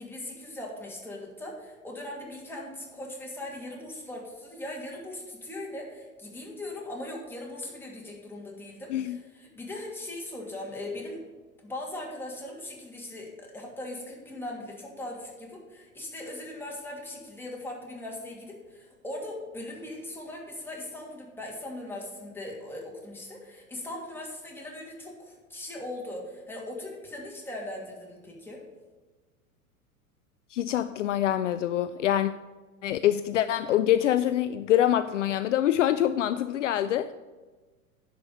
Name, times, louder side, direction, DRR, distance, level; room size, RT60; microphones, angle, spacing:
voice 1, 0.0-11.2 11.6-28.6, left 1 dB, 5° left, 2.6 m, -39 dB
voice 2, 30.5-32.3 32.8-37.1, left 11 dB, 60° left, 0.5 m, -25 dB
10.5 x 5.2 x 7.8 m
figure-of-eight pair, 90°, 43 cm